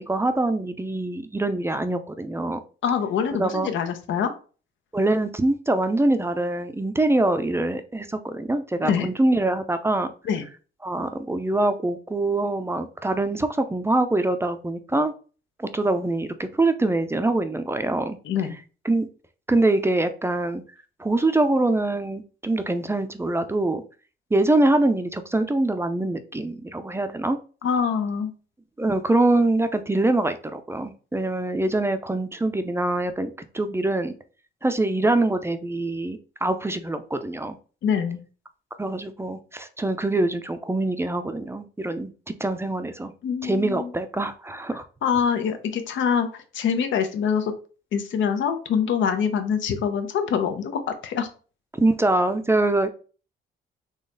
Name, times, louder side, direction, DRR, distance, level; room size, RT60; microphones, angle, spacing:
voice 1, 0.0-2.6 3.4-3.7 4.9-10.1 10.8-15.1 15.6-18.2 18.8-19.1 19.5-20.6 21.0-23.8 24.3-27.4 28.8-34.1 34.6-37.6 38.8-42.1 42.4-43.1 43.4-44.8 51.8-52.9, right 2 dB, 10° right, 9 dB, 0.5 m, -24 dB
voice 2, 2.8-4.3 8.8-9.1 10.3-10.4 18.2-18.6 27.6-28.3 37.8-38.2 43.2-43.9 45.0-47.5 47.9-51.3, left 7 dB, 75° left, 8 dB, 0.9 m, -24 dB
4.0 x 3.1 x 3.8 m, 0.37 s
cardioid pair, 90°, 20 cm